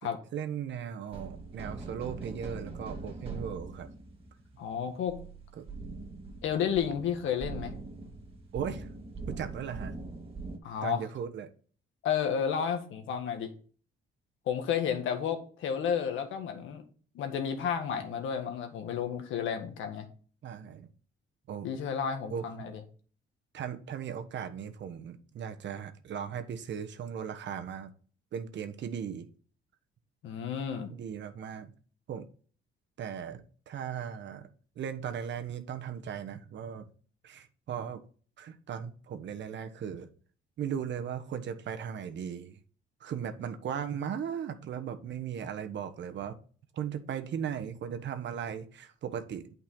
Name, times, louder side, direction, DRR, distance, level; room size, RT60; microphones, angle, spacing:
voice 1, 0.3-3.9 5.6-5.7 8.5-8.9 9.3-9.9 10.8-11.5 20.4-20.9 21.5-21.7 22.3-22.5 23.5-27.9 28.3-29.3 30.9-31.7 32.1-32.3 33.0-34.5 34.8-36.9 37.2-38.0 38.4-40.1 40.6-42.6 43.0-46.4 46.7-49.5, right 8 dB, 65° right, 8 dB, 1.2 m, -37 dB
sound 1, 1.1-10.6, right 3 dB, 30° right, 2.6 m, -42 dB
voice 2, 4.6-5.2 6.4-7.7 10.6-11.0 12.0-13.5 14.5-16.8 17.1-20.1 21.6-22.8 30.2-30.9, left 7 dB, 85° left, 6 dB, 1.7 m, -32 dB
8.9 x 5.4 x 4.0 m, 0.42 s
cardioid pair, 90°, 20 cm